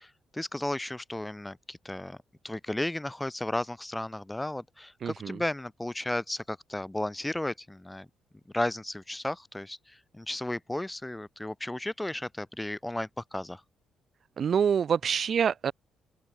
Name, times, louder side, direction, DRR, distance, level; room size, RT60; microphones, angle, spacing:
voice 1, 0.0-2.2 2.4-8.1 8.5-13.6, left 1 dB, 10° left, 2.6 m, -34 dB
voice 2, 5.0-5.4 14.4-15.7, right 7 dB, 55° right, 0.5 m, -26 dB
open air
cardioid pair, 90°, 0 cm